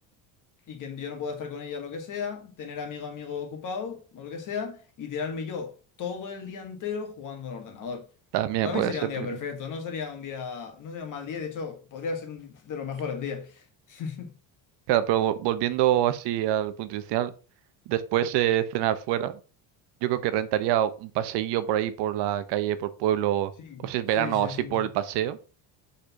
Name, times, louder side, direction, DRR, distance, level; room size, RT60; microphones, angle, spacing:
voice 1, 0.7-5.7 6.0-8.0 8.6-14.3 23.6-23.9 24.2-24.9, left 6 dB, 45° left, 1.8 m, -35 dB
voice 2, 8.3-8.9 9.2-9.3 14.9-17.3 17.9-19.3 20.0-23.5 23.8-25.4, right 12 dB, 65° right, 0.9 m, -25 dB
5.2 x 4.4 x 5.7 m
cardioid pair, 130°, 44 cm